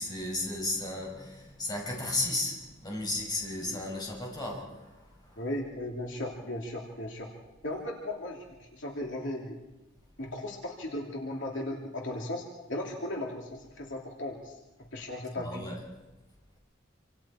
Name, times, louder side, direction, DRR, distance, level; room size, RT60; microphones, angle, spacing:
voice 1, 0.0-5.4 15.3-15.8, left 2 dB, 20° left, 5.9 m, -34 dB
voice 2, 5.4-7.3 7.6-8.4 8.7-9.6 10.2-12.4 12.7-14.5 14.9-15.7, left 1 dB, 70° left, 2.9 m, -36 dB
27.0 x 26.5 x 4.4 m
head